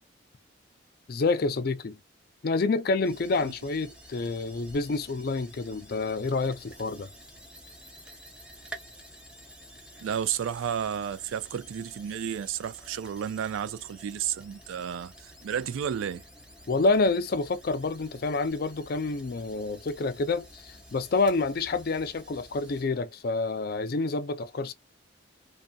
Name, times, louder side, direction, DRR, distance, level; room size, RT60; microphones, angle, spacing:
voice 1, 1.1-2.0 2.4-7.1 16.7-24.7, left 3 dB, 50° left, 0.4 m, -28 dB
sound 1, 3.0-22.9, right 1 dB, 5° right, 0.6 m, -50 dB
voice 2, 10.0-16.2, right 8 dB, 85° right, 0.3 m, -32 dB
2.6 x 2.6 x 2.2 m
head